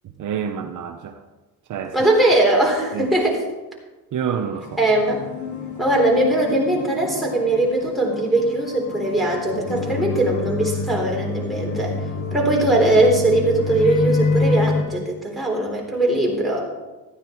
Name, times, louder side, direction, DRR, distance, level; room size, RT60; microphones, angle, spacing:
voice 1, 0.0-1.2 1.7-2.1 2.9-3.1 4.1-4.8, right 7 dB, 50° right, 6 dB, 1.0 m, -28 dB
voice 2, 1.9-3.4 4.8-5.2 5.8-12.0 12.3-16.7, right 1 dB, ahead, -3 dB, 3.8 m, -20 dB
sound 1, 4.6-14.8, left 3 dB, 50° left, 2.2 m, -27 dB
14.0 x 9.4 x 4.6 m, 1.2 s
cardioid pair, 105°, 38 cm